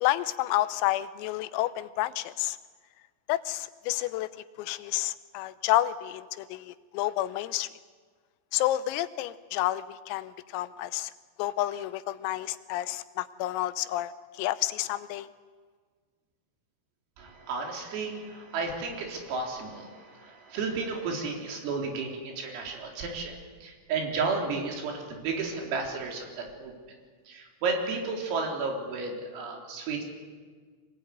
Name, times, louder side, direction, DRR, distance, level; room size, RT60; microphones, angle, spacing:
voice 1, 0.0-2.6 3.3-4.3 4.6-7.7 8.5-11.1 11.4-15.3, left 15 dB, 90° left, 13 dB, 3.6 m, -30 dB
voice 2, 17.2-26.7 27.3-30.0, right 4 dB, 80° right, 1 dB, 6.5 m, -33 dB
25.5 x 20.0 x 9.5 m, 1.6 s
omnidirectional pair, 5.9 m